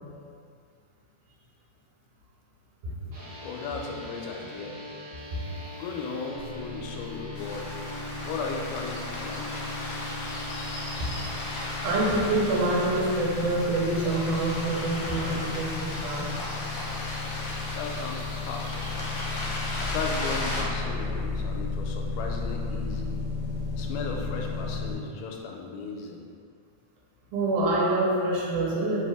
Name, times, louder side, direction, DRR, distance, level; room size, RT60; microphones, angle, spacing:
sound 1, 3.1-12.6, right 1 dB, 50° right, 1.9 m, -43 dB
voice 1, 3.4-4.7 5.8-7.8 8.2-9.6 17.8-19.3 19.5-23.2 23.8-26.2, left 4 dB, 90° left, 1 dB, 2.1 m, -36 dB
sound 2, 6.3-25.0, left 4 dB, 70° right, 1.9 m, -35 dB
sound 3, 7.4-20.6, left 1 dB, 70° left, 1.5 m, -36 dB
voice 2, 7.5-7.8 8.1-8.3 11.0-11.1 11.8-16.3 27.3-29.1, right 2 dB, 85° right, -4 dB, 2.2 m, -26 dB
4.8 x 2.7 x 3.4 m, 2.3 s
omnidirectional pair, 3.6 m